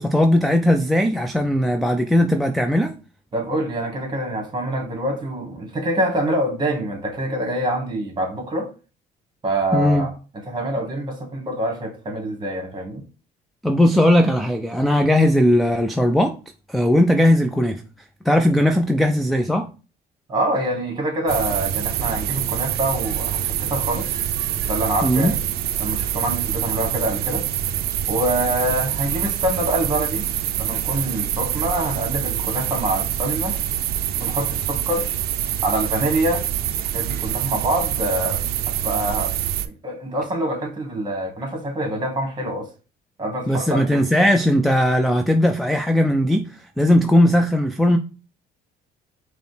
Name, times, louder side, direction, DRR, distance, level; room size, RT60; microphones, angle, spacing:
voice 1, 0.0-2.9 9.7-10.1 13.6-16.4 16.7-17.8 18.3-19.7 25.0-25.3 43.5-46.5 46.8-48.0, left 1 dB, ahead, 0.3 m, -18 dB
voice 2, 3.3-8.7 9.4-10.1 10.5-13.0 20.3-24.1 24.7-25.4 25.8-27.4 28.1-30.3 30.6-33.5 34.2-35.1 35.6-36.4 36.8-38.4 38.7-39.3 39.6-42.7 43.2-44.0, right 1 dB, 25° right, 1.3 m, -25 dB
sound 1, 21.3-39.7, right 11 dB, 65° right, 0.4 m, -25 dB
5.0 x 2.1 x 3.2 m
cardioid pair, 110°, 17 cm